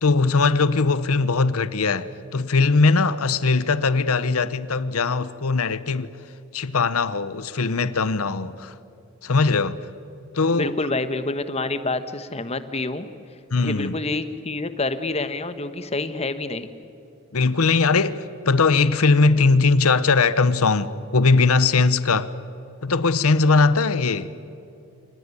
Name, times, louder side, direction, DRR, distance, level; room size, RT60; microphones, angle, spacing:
voice 1, 0.0-6.1 6.5-8.7 9.2-9.8 10.3-10.7 13.5-14.0 17.3-22.3 22.8-24.3, left 4 dB, 80° left, 0.9 m, -20 dB
voice 2, 10.5-13.1 13.6-16.7, left 2 dB, 30° left, 1.2 m, -27 dB
28.0 x 19.0 x 9.8 m
head